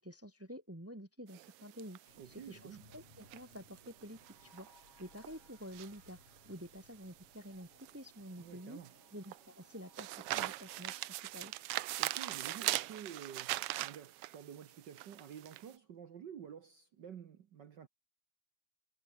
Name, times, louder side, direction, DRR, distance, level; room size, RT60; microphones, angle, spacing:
voice 1, 0.0-6.2 6.4-8.8 9.1-11.0 11.3-11.5, equal, 15° right, 0.6 m, -49 dB
sound 1, 1.3-15.7, right 16 dB, 80° right, 1.3 m, -41 dB
sound 2, 2.1-12.4, left 4 dB, 50° left, 5.3 m, -66 dB
voice 2, 2.2-2.9 8.4-8.9 12.0-17.9, right 8 dB, 65° right, 1.1 m, -50 dB
omnidirectional pair, 3.4 m